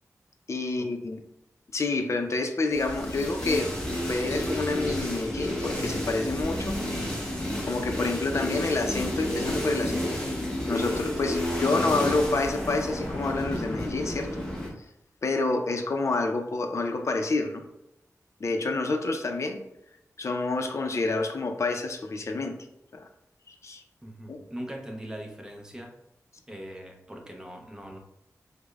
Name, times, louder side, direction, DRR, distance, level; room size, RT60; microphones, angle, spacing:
voice 1, 0.5-1.2 1.7-3.7 4.1-6.8 7.3-10.0 10.7-14.4 15.2-17.6 18.4-19.6 20.2-22.5 22.9-23.1 23.5-23.8 24.3-24.4, left 3 dB, 55° left, 5 dB, 0.5 m, -28 dB
sound 1, 2.7-14.7, left 1 dB, 15° left, 1.0 m, -31 dB
voice 2, 24.0-26.0 26.5-28.0, right 1 dB, 10° right, 2 dB, 0.6 m, -40 dB
4.9 x 2.1 x 2.3 m, 0.85 s
wide cardioid pair, 85°, 6 cm